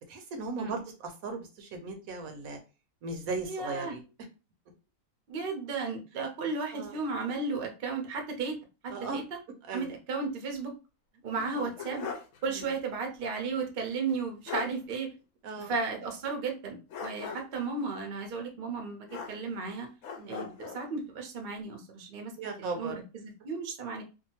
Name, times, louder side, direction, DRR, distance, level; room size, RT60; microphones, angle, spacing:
voice 1, 0.1-2.6 3.0-4.0 6.7-6.9 8.9-9.2 9.7-9.9 11.5-11.7 12.5-12.7 15.4-15.7 20.2-20.6 22.4-23.0, right 4 dB, 75° right, 5 dB, 1.0 m, -37 dB
voice 2, 3.4-4.0 5.3-8.6 8.8-9.2 9.7-10.7 11.2-12.1 12.4-15.1 15.6-19.9 20.3-22.3 22.6-22.9 23.2-24.0, right 4 dB, 50° right, 3 dB, 0.6 m, -34 dB
sound 1, 11.4-12.4 12.7-12.8 14.1-14.2 14.5-14.8 16.9-17.6 19.1-19.7 20.0-20.8, left 6 dB, 65° left, 0.9 m, -39 dB
2.7 x 2.3 x 2.7 m, 0.31 s
omnidirectional pair, 1.6 m